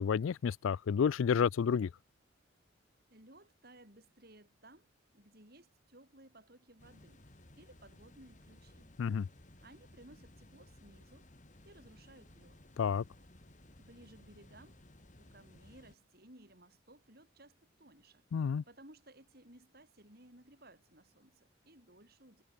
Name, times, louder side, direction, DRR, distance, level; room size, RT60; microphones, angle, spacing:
voice 1, 0.0-1.9 9.0-9.3 12.8-13.0 18.3-18.6, left 6 dB, 80° left, 0.4 m, -30 dB
voice 2, 3.1-7.2 7.6-8.9 9.6-11.3 11.6-12.6 13.8-14.8 15.2-18.2 18.7-22.4, right 1 dB, 50° right, 7.1 m, -59 dB
sound 1, 6.8-15.9, left 1 dB, 40° left, 2.3 m, -59 dB
head